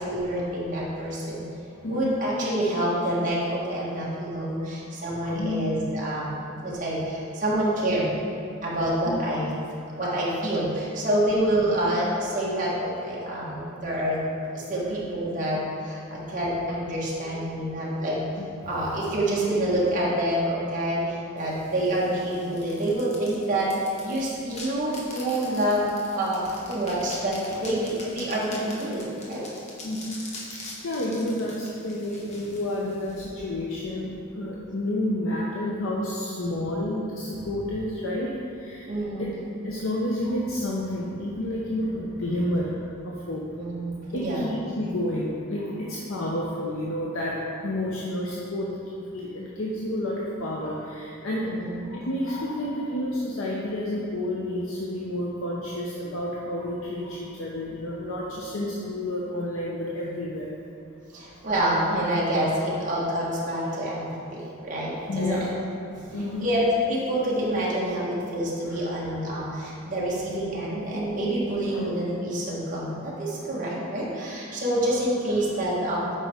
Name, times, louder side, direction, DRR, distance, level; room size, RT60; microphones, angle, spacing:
voice 1, 0.0-1.5 1.9-6.3 6.6-8.1 8.6-9.5 9.9-14.2 14.5-18.3 18.7-23.7 24.0-26.4 26.7-29.4 38.9-39.3 43.5-44.5 51.4-51.7 57.7-57.8 61.1-65.5 66.4-76.0, right 1 dB, 40° right, -7 dB, 1.5 m, -27 dB
voice 2, 1.8-2.3 4.6-4.7 5.2-5.7 9.0-9.2 14.7-15.0 16.1-16.2 17.8-18.0 18.4-19.0 21.0-21.1 21.6-21.7 22.6-22.7 26.4-26.5 26.9-27.1 27.5-27.6 29.8-30.2 30.5-38.9 39.2-39.3 39.6-43.4 44.1-51.5 51.8-60.6 61.1-61.4 64.8-65.6 65.9-66.8 68.7-69.2 69.5-69.6 71.7-72.1 74.7-75.0 75.3-75.6, left 1 dB, 75° left, -4 dB, 0.7 m, -31 dB
sound 1, 21.4-33.3, left 2 dB, 30° left, 1.0 m, -44 dB
8.3 x 5.1 x 3.5 m, 2.6 s
head